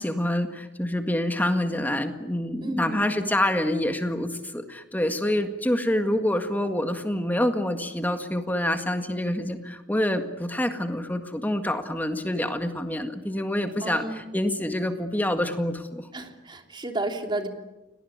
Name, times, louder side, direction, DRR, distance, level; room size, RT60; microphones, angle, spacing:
voice 1, 0.0-16.1, left 1 dB, 10° left, 7 dB, 1.8 m, -27 dB
voice 2, 2.6-3.1 13.8-14.2 16.1-17.5, right 2 dB, 25° right, 4 dB, 3.2 m, -32 dB
30.0 x 18.5 x 9.6 m, 1.0 s
head